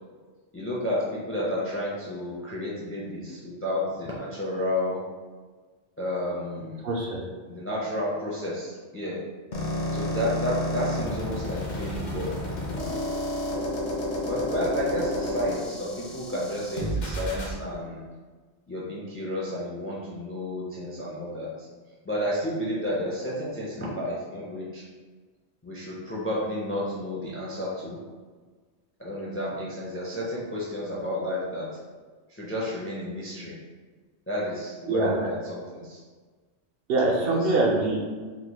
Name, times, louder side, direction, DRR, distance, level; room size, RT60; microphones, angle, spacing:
voice 1, 0.5-5.0 6.0-6.8 7.5-9.2 9.9-13.0 14.2-18.0 18.7-21.7 22.0-24.8 25.6-28.0 29.0-31.7 32.3-33.5 34.3-36.0 37.2-37.5, left 1 dB, 20° left, -6 dB, 0.3 m, -31 dB
voice 2, 6.8-7.2 34.9-35.3 36.9-38.0, right 2 dB, 65° right, -1 dB, 0.8 m, -24 dB
sound 1, 9.5-17.5, left 1 dB, 50° left, 0.7 m, -31 dB
3.6 x 3.0 x 2.2 m, 1.4 s
omnidirectional pair, 1.2 m